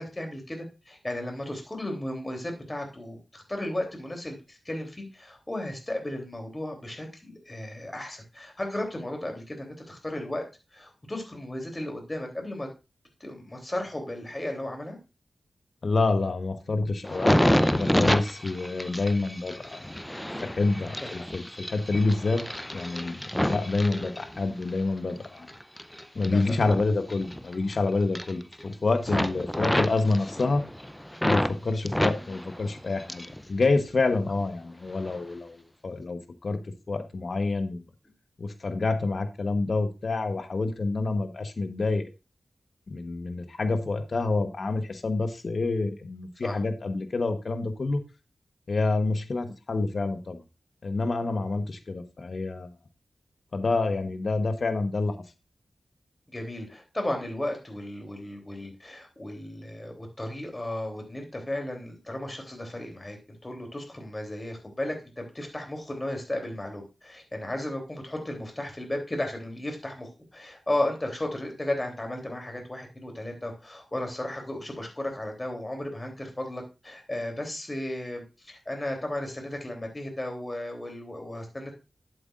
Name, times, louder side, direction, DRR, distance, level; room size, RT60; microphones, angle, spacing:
voice 1, 0.0-10.4 10.7-12.7 13.2-15.0 20.8-21.3 26.1-26.6 29.1-29.2 46.4-46.6 56.3-63.2 63.4-81.7, left 1 dB, 25° left, 3 dB, 3.2 m, -34 dB
voice 2, 15.8-20.0 20.4-22.4 22.7-25.5 26.1-30.6 31.2-36.6 36.9-37.8 38.4-42.1 42.9-48.0 48.7-50.4 50.8-52.7 53.5-55.1, left 3 dB, 65° left, 9 dB, 1.1 m, -28 dB
sound 1, 17.0-24.7 25.2-27.8 28.0-28.7 29.0-31.5 31.9-33.4 33.7-34.4 35.0-35.2, equal, 10° left, 0.6 m, -29 dB
11.5 x 7.9 x 2.5 m, 0.28 s
cardioid pair, 60°, 0 cm